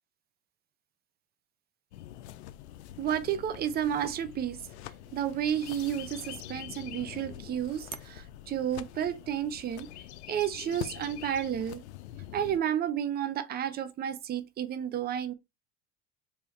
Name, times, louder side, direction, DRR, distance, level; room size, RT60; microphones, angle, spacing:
sound 1, 1.9-12.6, left 13 dB, 80° left, 0.5 m, -45 dB
voice 1, 3.0-4.6 5.1-9.9 10.3-11.8 12.3-15.3, right 9 dB, 30° right, 0.6 m, -31 dB
3.4 x 3.0 x 3.2 m
hypercardioid pair, 85°, 33 cm